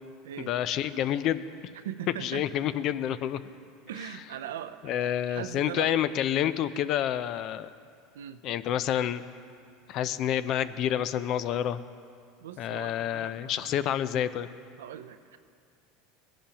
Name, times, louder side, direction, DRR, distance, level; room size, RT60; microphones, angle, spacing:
voice 1, 0.5-1.4 2.2-3.4 4.8-7.7 8.4-9.2 9.9-11.8 12.6-14.5, left 10 dB, 50° left, 14 dB, 0.4 m, -28 dB
voice 2, 1.7-2.4 3.9-6.0 8.1-8.4 12.4-13.8 14.8-15.4, right 10 dB, 85° right, 11 dB, 0.5 m, -40 dB
18.0 x 10.0 x 2.9 m, 2.3 s
supercardioid pair, 105°, 0 cm